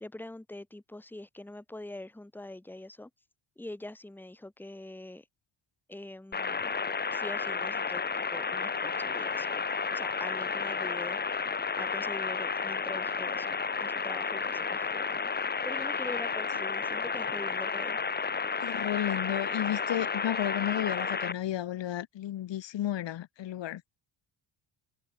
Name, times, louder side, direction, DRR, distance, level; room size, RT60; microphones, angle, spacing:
voice 1, 0.0-3.1 3.6-5.3 5.9-6.7 7.1-9.6 9.9-11.2 11.8-15.3 15.7-18.0, left 1 dB, 5° left, 1.7 m, -44 dB
sound 1, 6.3-21.3, left 5 dB, 20° left, 0.9 m, -32 dB
voice 2, 18.6-23.8, left 12 dB, 65° left, 1.2 m, -33 dB
wide cardioid pair, 175°, 48 cm